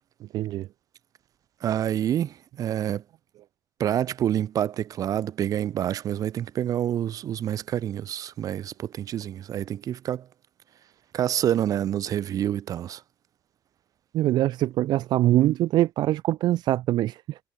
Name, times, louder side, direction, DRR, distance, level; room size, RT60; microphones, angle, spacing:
voice 1, 0.2-0.7 14.1-17.4, right 14 dB, 65° right, 1.3 m, -23 dB
voice 2, 1.6-3.0 3.8-10.3 11.1-13.0, right 10 dB, 50° right, 6.8 m, -27 dB
cardioid pair, 160°, 8 cm